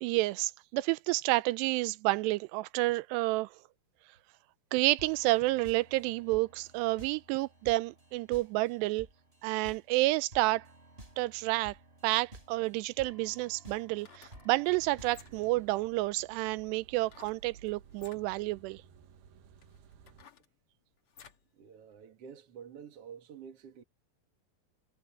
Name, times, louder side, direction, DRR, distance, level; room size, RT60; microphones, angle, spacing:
voice 1, 0.0-3.5 4.7-9.1 9.4-10.7 11.2-11.8 12.0-18.8, right 20 dB, 90° right, 2.7 m, -30 dB
sound 1, 5.0-15.7, right 1 dB, 15° right, 4.5 m, -54 dB
sound 2, 13.9-14.5 15.0-15.6 17.1-17.4 17.9-18.2 19.0-19.1 19.6-21.5 21.9-22.0, left 7 dB, 50° left, 1.8 m, -56 dB
sound 3, 14.7-20.3, right 8 dB, 70° right, 3.3 m, -56 dB
voice 2, 21.5-23.8, right 7 dB, 45° right, 2.4 m, -49 dB
omnidirectional pair, 4.8 m